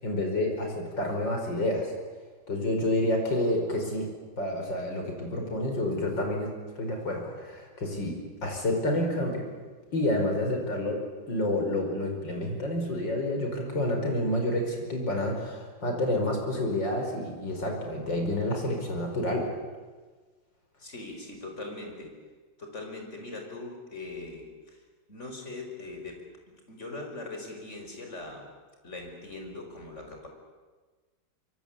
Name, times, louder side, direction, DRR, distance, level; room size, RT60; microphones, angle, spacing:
voice 1, 0.0-1.9 2.5-4.1 4.4-6.5 6.8-9.5 9.9-11.0 11.3-19.5, left 1 dB, 60° left, 2 dB, 5.8 m, -29 dB
voice 2, 20.8-22.1 22.6-24.8 25.1-26.2 26.7-28.5 28.8-30.3, left 2 dB, 35° left, 3 dB, 5.3 m, -41 dB
25.0 x 23.0 x 8.7 m, 1.4 s
omnidirectional pair, 2.3 m